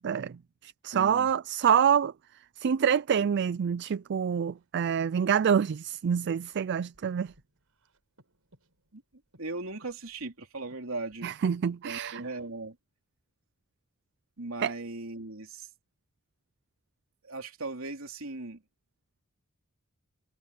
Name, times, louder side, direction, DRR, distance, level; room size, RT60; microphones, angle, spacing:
voice 1, 0.0-2.1 2.6-7.3 11.2-12.2 14.6-14.7, right 7 dB, 55° right, 0.4 m, -26 dB
voice 2, 0.9-1.3 8.9-9.0 9.4-11.3 11.8-12.8 14.4-15.7 17.2-18.6, right 2 dB, 70° right, 3.5 m, -38 dB
Breathing, 4.2-12.7, right 1 dB, 90° right, 4.7 m, -66 dB
head